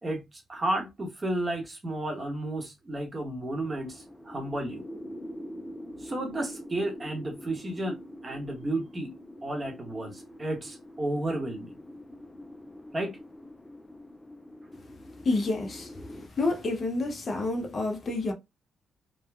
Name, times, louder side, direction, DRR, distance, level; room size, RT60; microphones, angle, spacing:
voice 1, 0.0-4.8 6.0-9.1 9.4-11.7 12.9-13.2, right 1 dB, 25° right, 0.9 m, -32 dB
sound 1, 3.6-16.3, left 1 dB, 10° left, 0.4 m, -44 dB
voice 2, 15.2-15.9 16.3-18.3, left 2 dB, 45° left, 0.7 m, -28 dB
3.2 x 2.1 x 2.2 m
cardioid pair, 95°, 0 cm